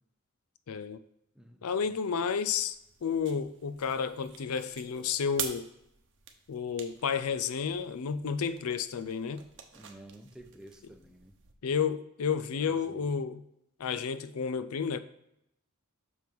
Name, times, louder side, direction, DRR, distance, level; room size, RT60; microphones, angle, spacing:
voice 1, 0.7-1.0 1.6-2.8 3.0-5.7 6.5-9.4 11.6-13.4 13.8-15.0, left 6 dB, 80° left, 14 dB, 0.5 m, -31 dB
voice 2, 1.4-1.9 9.7-11.3 12.4-13.0, right 1 dB, 5° right, 4 dB, 0.7 m, -52 dB
sound 1, 2.7-11.6, right 8 dB, 60° right, 0.9 m, -46 dB
6.3 x 5.3 x 4.5 m, 0.81 s
head